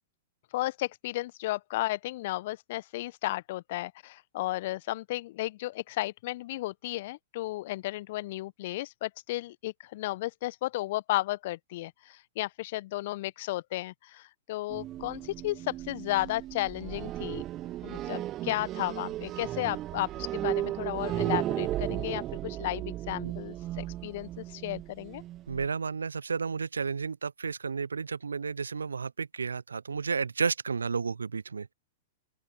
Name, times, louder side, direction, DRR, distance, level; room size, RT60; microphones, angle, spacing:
voice 1, 0.5-17.4 17.8-25.2, left 17 dB, 50° left, 1.1 m, -34 dB
sound 1, 14.7-25.7, right 14 dB, 30° right, 1.2 m, -35 dB
voice 2, 25.5-31.7, right 5 dB, 75° right, 0.9 m, -32 dB
open air
figure-of-eight pair, 105°, 0 cm